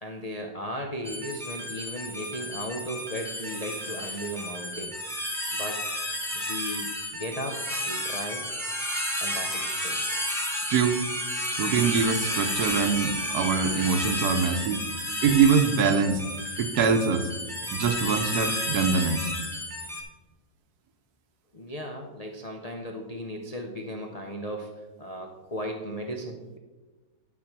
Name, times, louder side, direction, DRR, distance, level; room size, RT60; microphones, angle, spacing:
voice 1, 0.0-5.0 5.5-5.9 6.3-8.5 9.2-10.0 21.5-26.6, equal, 60° left, 2 dB, 0.3 m, -36 dB
sound 1, 1.0-20.0, left 1 dB, ahead, 1.1 m, -32 dB
voice 2, 10.7-11.0 11.6-14.8 15.2-16.2 16.6-17.3 17.7-19.3, right 6 dB, 65° right, 8 dB, 1.2 m, -24 dB
11.5 x 4.2 x 6.0 m, 1.2 s
omnidirectional pair, 1.9 m